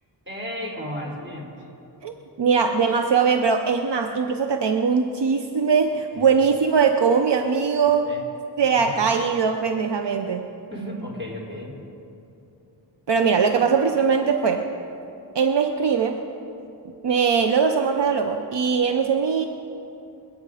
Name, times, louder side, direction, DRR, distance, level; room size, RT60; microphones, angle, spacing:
voice 1, 0.3-1.5 6.1-6.4 8.1-8.2 8.8-9.1 10.7-11.7, equal, 25° right, -2 dB, 3.8 m, -34 dB
voice 2, 2.4-8.1 8.6-10.5 13.1-14.7 15.3-16.2 17.0-19.5, right 6 dB, 70° right, 6 dB, 0.8 m, -21 dB
26.5 x 8.9 x 4.9 m, 2.8 s
wide cardioid pair, 85°, 44 cm